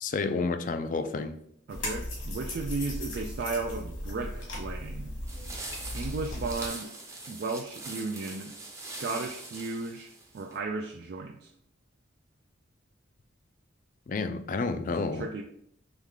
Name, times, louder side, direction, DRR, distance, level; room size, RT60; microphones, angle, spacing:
voice 1, 0.0-1.3 14.1-15.3, left 4 dB, 40° left, 8 dB, 0.3 m, -30 dB
sound 1, 1.7-6.7, left 1 dB, 85° left, 1.5 m, -37 dB
voice 2, 1.7-5.1 5.9-6.9 7.3-8.5 8.8-11.5 15.0-15.4, right 3 dB, 55° right, 3 dB, 0.3 m, -35 dB
sound 2, 5.3-10.6, right 2 dB, 15° right, 0.6 m, -42 dB
3.5 x 3.1 x 3.6 m, 0.70 s
head